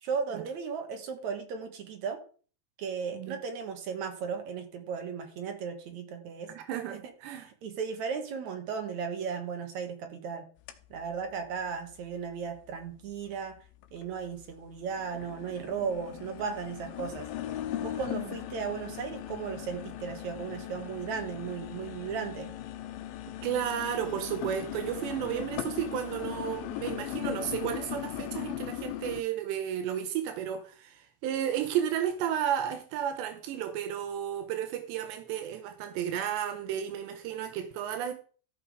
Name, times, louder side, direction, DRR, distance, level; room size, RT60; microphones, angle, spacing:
voice 1, 0.0-2.2 2.8-6.5 6.9-7.0 7.4-10.4 10.9-13.5 13.9-17.3 17.8-22.5, right 6 dB, 60° right, 2.0 m, -36 dB
voice 2, 6.5-7.5 18.2-18.3 23.4-38.1, right 9 dB, 85° right, 3.1 m, -33 dB
sound 1, 10.7-10.8 11.3-11.4 12.0-12.1 13.3-13.4 13.8-14.4 14.8-29.2, left 12 dB, 75° left, 2.3 m, -38 dB
14.5 x 6.0 x 4.8 m
omnidirectional pair, 4.9 m